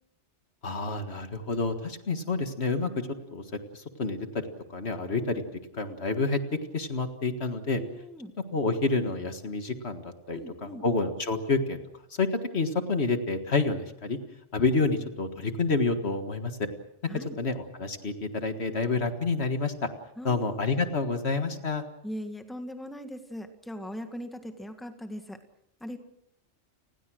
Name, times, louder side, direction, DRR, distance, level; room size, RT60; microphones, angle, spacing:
voice 1, 0.6-3.4 3.7-4.4 4.7-5.4 5.7-6.4 6.7-7.8 8.5-11.8 12.2-12.3 12.5-14.2 14.5-16.7 17.4-19.9 20.2-21.8, left 3 dB, 65° left, 7 dB, 2.0 m, -28 dB
voice 2, 7.7-8.3 10.3-10.8 17.1-17.4 20.2-20.6 22.0-25.4 25.8-26.0, equal, ahead, 7 dB, 1.8 m, -40 dB
30.0 x 20.5 x 6.3 m, 0.81 s
omnidirectional pair, 1.2 m